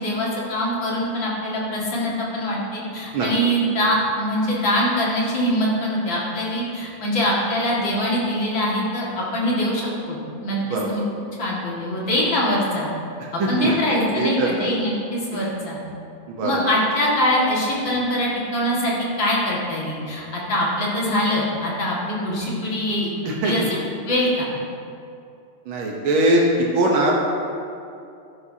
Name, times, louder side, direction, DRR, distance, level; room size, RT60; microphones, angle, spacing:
voice 1, 0.0-10.6 10.9-11.0 11.4-12.9 13.5-15.8 16.4-18.9 19.2-23.1 23.4-23.6 24.1-24.5, equal, 70° left, -5 dB, 2.8 m, -23 dB
voice 2, 13.2-13.8 14.2-14.7 15.3-15.5 16.3-16.6 23.2-23.7 25.7-27.1, right 1 dB, 85° right, -2 dB, 1.9 m, -22 dB
13.0 x 11.0 x 2.8 m, 2.6 s
omnidirectional pair, 2.2 m